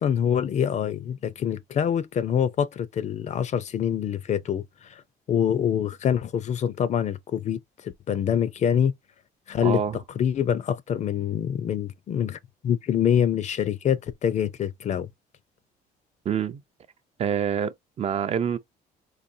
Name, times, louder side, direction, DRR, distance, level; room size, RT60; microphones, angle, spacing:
voice 1, 0.0-5.0 5.3-8.9 9.5-9.8 10.2-15.1, left 9 dB, 45° left, 0.5 m, -25 dB
voice 2, 9.6-10.0 16.2-16.6 17.2-18.6, right 8 dB, 40° right, 0.5 m, -26 dB
4.0 x 2.5 x 2.6 m
cardioid pair, 110°, 17 cm